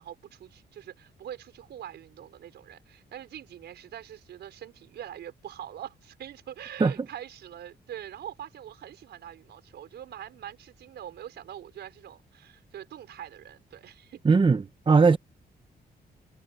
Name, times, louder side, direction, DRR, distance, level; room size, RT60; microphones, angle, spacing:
voice 1, 0.0-14.4, right 10 dB, 85° right, 5.2 m, -43 dB
voice 2, 14.2-15.2, right 4 dB, 30° right, 1.2 m, -19 dB
cardioid pair, 100°, 17 cm